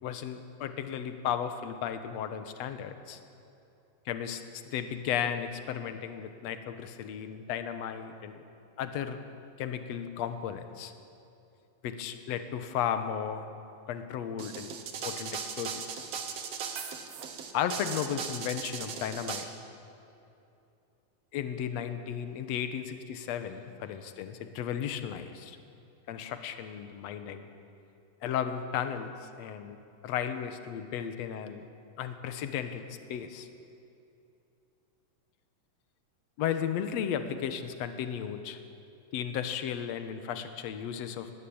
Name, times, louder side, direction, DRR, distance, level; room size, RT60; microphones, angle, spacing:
voice 1, 0.0-3.2 4.1-8.4 8.8-9.2 9.6-10.9 11.8-13.5 13.9-14.8 15.0-16.1 17.5-19.5 21.3-25.6 26.1-27.5 28.2-29.8 30.0-31.7 32.0-33.5 36.4-38.6 39.1-41.3, left 9 dB, 60° left, 9 dB, 2.0 m, -34 dB
sound 1, 14.4-19.4, right 6 dB, 55° right, 2.1 m, -38 dB
20.0 x 17.0 x 8.7 m, 2.7 s
omnidirectional pair, 3.9 m